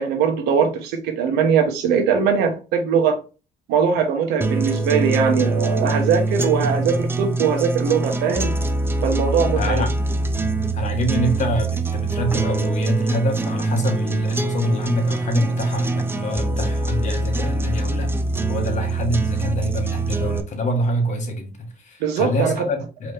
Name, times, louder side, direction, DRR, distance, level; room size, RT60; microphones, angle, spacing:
voice 1, 0.0-3.2 3.7-8.5 9.0-9.8 22.0-22.6, right 6 dB, 90° right, 1.1 m, -21 dB
sound 1, 4.4-20.4, right 2 dB, 15° right, 0.5 m, -24 dB
voice 2, 9.5-9.9 10.7-18.1 18.5-23.1, equal, 45° left, 1.3 m, -25 dB
4.6 x 3.1 x 3.3 m
cardioid pair, 110°, 17 cm